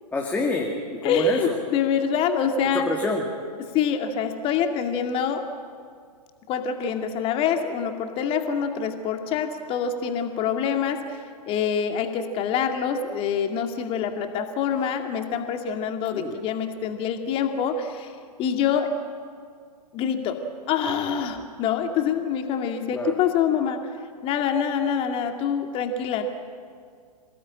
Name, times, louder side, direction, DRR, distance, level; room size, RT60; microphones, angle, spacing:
voice 1, 0.1-1.6 2.9-3.2 16.1-16.4 22.9-23.1, left 3 dB, 10° left, 0 dB, 2.2 m, -27 dB
voice 2, 1.0-2.9 3.7-5.4 6.5-11.2 11.5-18.1 18.4-18.9 19.9-20.4 20.7-23.8 24.2-26.2, left 7 dB, 25° left, 5 dB, 2.2 m, -25 dB
27.5 x 17.5 x 8.8 m, 2.1 s
figure-of-eight pair, 115°, 21 cm